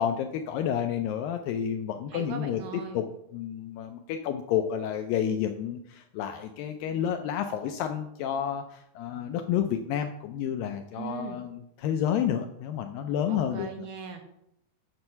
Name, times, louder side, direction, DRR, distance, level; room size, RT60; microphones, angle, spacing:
voice 1, 0.0-2.6 2.9-3.0 3.3-13.9, left 9 dB, 90° left, 6 dB, 2.0 m, -30 dB
voice 2, 2.1-3.0 10.9-11.4 13.3-14.2, right 6 dB, 75° right, 3 dB, 1.9 m, -39 dB
7.6 x 6.2 x 5.6 m, 0.78 s
omnidirectional pair, 4.6 m